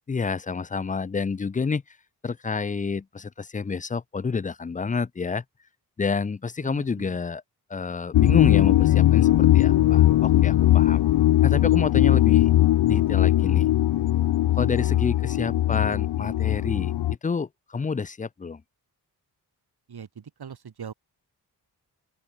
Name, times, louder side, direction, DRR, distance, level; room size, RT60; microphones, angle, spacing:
voice 1, 0.1-1.8 2.2-5.4 6.0-7.4 7.7-11.0 11.4-12.5 12.9-13.7 14.6-16.9 17.2-18.6, left 5 dB, 20° left, 0.5 m, -29 dB
voice 2, 6.6-7.2 19.9-20.9, right 7 dB, 70° right, 5.6 m, -41 dB
sound 1, 8.1-17.2, left 14 dB, 90° left, 0.6 m, -19 dB
open air
wide cardioid pair, 105°, 40 cm